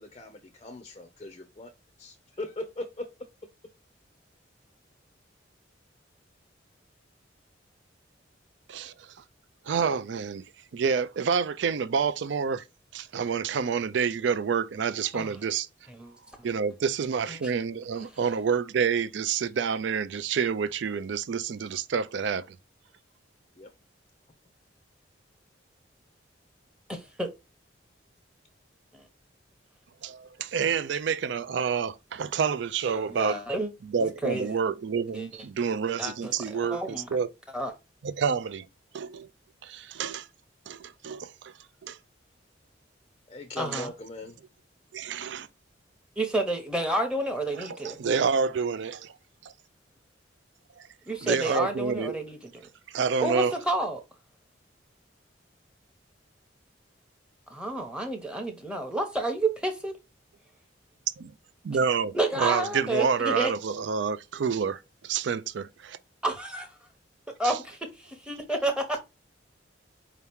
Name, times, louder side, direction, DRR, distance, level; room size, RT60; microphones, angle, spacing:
voice 1, 0.0-1.7 2.0-3.1 23.6-23.7 43.3-44.4, left 1 dB, 30° left, 0.5 m, -39 dB
voice 2, 9.7-10.4 10.7-12.6 12.9-15.7 16.4-22.6 30.0-33.4 33.9-37.3 38.0-38.7 38.9-39.3 39.6-40.3 40.7-41.5 41.8-42.0 43.7-43.8 44.9-45.5 47.5-49.1 50.8-50.9 51.2-52.2 52.9-53.5 61.2-61.3 61.6-66.0 67.4-67.6, right 6 dB, 70° right, 0.4 m, -28 dB
voice 3, 26.9-27.3 28.9-29.0 32.9-33.7 34.0-34.6 35.1-35.3 36.0-37.1 37.5-37.7 43.6-43.9 46.2-48.0 51.1-52.5 53.2-54.0 57.5-59.9 62.1-63.5 66.2-66.7 67.4-69.0, right 1 dB, 5° right, 0.8 m, -30 dB
4.6 x 2.8 x 3.4 m
head